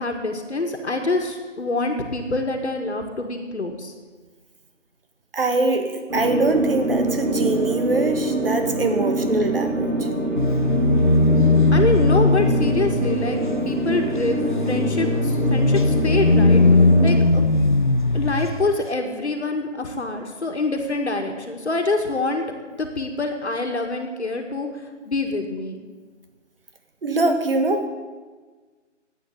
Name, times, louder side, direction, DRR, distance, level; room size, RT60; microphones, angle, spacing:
voice 1, 0.0-3.9 11.7-13.4 13.7-14.4 14.6-16.6 17.0-17.4 18.1-24.7 25.1-25.8, left 3 dB, 60° left, 4 dB, 1.9 m, -25 dB
voice 2, 5.3-9.9 27.0-27.9, right 2 dB, 50° right, 6 dB, 1.7 m, -23 dB
sound 1, 6.1-17.2, right 1 dB, 90° right, 3.6 m, -25 dB
sound 2, 10.4-18.7, left 2 dB, 45° left, 0.4 m, -19 dB
11.0 x 8.8 x 8.6 m, 1.4 s
figure-of-eight pair, 170°, 37 cm